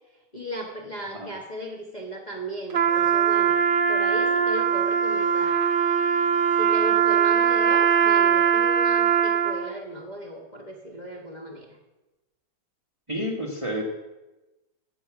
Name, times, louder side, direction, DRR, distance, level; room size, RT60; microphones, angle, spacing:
voice 1, 0.3-3.6 3.9-5.6 6.6-11.8, equal, 25° left, -1 dB, 1.2 m, -36 dB
Trumpet, 2.7-9.7, right 7 dB, 50° right, 0.6 m, -21 dB
voice 2, 13.1-13.8, equal, 20° right, 1 dB, 1.3 m, -30 dB
14.0 x 7.7 x 5.9 m, 1.1 s
omnidirectional pair, 1.9 m